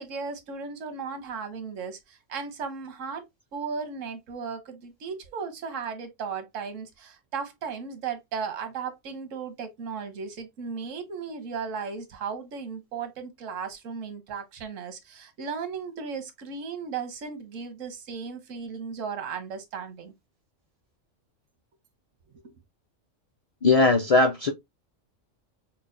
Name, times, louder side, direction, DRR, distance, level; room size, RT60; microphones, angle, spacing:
voice 1, 0.0-3.2 3.5-20.1 22.3-22.5, right 5 dB, 90° right, 1.2 m, -36 dB
voice 2, 23.6-24.5, left 3 dB, 45° left, 0.5 m, -19 dB
5.5 x 2.3 x 2.5 m
omnidirectional pair, 1.3 m